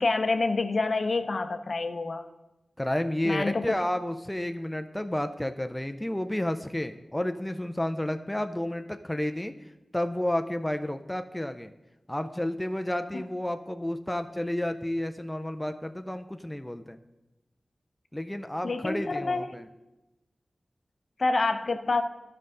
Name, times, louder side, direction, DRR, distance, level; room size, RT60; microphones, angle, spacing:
voice 1, 0.0-2.3 3.2-3.7 13.1-13.2 18.6-19.5 21.2-22.0, left 3 dB, 60° left, 8 dB, 0.6 m, -27 dB
voice 2, 2.8-9.5 9.9-11.7 12.1-17.0 18.1-19.6, left 1 dB, 10° left, 7 dB, 0.4 m, -31 dB
13.0 x 5.4 x 3.8 m, 1.0 s
wide cardioid pair, 75°, 0 cm